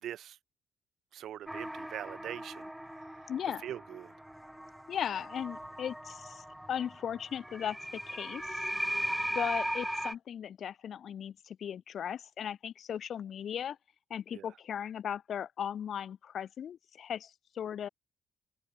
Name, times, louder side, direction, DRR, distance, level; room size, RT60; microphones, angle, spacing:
voice 1, 0.0-0.4 1.1-3.3 3.6-4.1 9.3-9.4 14.3-14.5, right 11 dB, 70° right, 4.1 m, -43 dB
sound 1, 1.5-10.1, equal, 5° right, 0.4 m, -38 dB
voice 2, 3.3-3.6 4.9-8.6 9.3-13.8 14.1-17.9, left 9 dB, 60° left, 0.6 m, -37 dB
cardioid pair, 90°, 0 cm